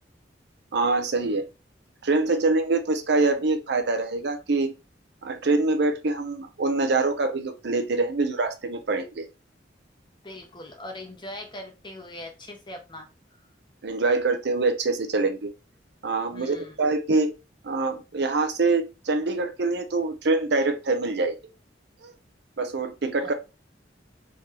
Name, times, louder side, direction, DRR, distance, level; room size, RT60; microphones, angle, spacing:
voice 1, 0.7-1.4 2.0-4.7 5.2-9.3 13.8-15.5 16.0-17.3 17.6-21.3 22.0-22.1 22.6-23.3, right 3 dB, 65° right, 0.6 m, -25 dB
voice 2, 10.2-13.1 16.3-16.8 23.2-23.3, left 1 dB, 25° left, 0.9 m, -41 dB
3.7 x 2.9 x 3.2 m
head